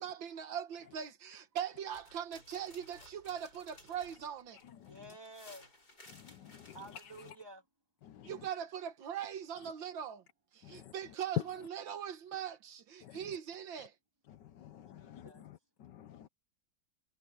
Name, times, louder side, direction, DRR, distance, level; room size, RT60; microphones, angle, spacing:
voice 1, 0.0-4.6 8.2-10.2 10.5-13.9, right 9 dB, 85° right, 2.1 m, -41 dB
sound 1, 1.9-7.3, left 1 dB, 55° left, 8.6 m, -58 dB
voice 2, 4.9-5.7 6.7-7.6 15.0-15.4, right 1 dB, 10° right, 3.4 m, -51 dB
voice 3, 6.1-6.8 8.0-8.3 10.6-10.9 13.0-13.2 14.3-16.3, left 11 dB, 70° left, 1.4 m, -54 dB
omnidirectional pair, 2.0 m